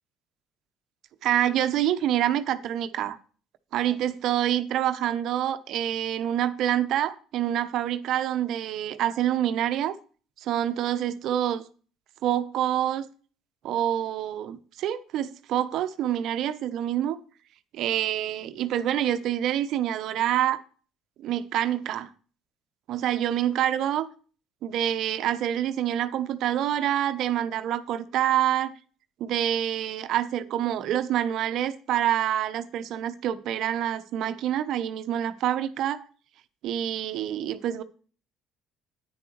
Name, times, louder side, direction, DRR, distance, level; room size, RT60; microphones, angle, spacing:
voice 1, 1.2-3.2 3.7-10.0 10.4-11.6 12.2-13.1 13.6-17.2 17.7-20.6 21.2-22.1 22.9-24.1 24.6-28.7 29.2-36.0 36.6-37.8, right 11 dB, 60° right, 0.9 m, -26 dB
10.5 x 9.4 x 3.1 m
hypercardioid pair, 60°, 0 cm